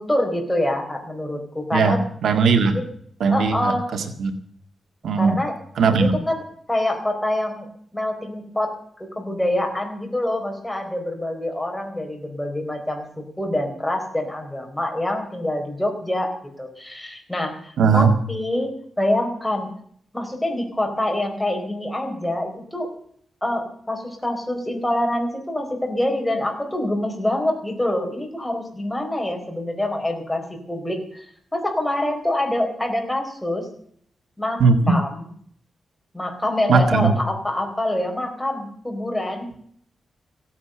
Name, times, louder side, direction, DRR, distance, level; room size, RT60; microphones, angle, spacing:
voice 1, 0.0-2.0 2.7-2.8 3.3-3.9 5.2-5.5 5.9-6.4 6.7-8.7 9.0-19.7 20.1-22.9 23.4-33.7 34.4-35.2 36.1-39.5, left 1 dB, 5° left, 3 dB, 4.0 m, -26 dB
voice 2, 1.7-2.8 3.2-4.3 5.0-5.4 5.8-6.2 17.8-18.1 34.6-34.9 36.7-37.1, right 5 dB, 80° right, 6 dB, 1.9 m, -18 dB
16.5 x 9.5 x 7.8 m, 0.62 s
wide cardioid pair, 135°, 0 cm